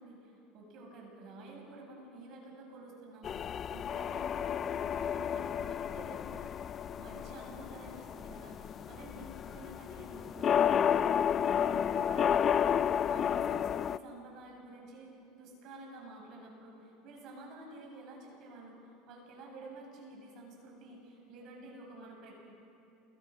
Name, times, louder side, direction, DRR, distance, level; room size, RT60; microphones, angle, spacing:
voice 1, 0.0-15.1 15.4-22.4, right 2 dB, 55° right, 0 dB, 8.0 m, -50 dB
sound 1, 3.2-14.0, left 8 dB, 35° left, 0.5 m, -31 dB
29.0 x 23.5 x 6.5 m, 2.9 s
supercardioid pair, 120°, 0 cm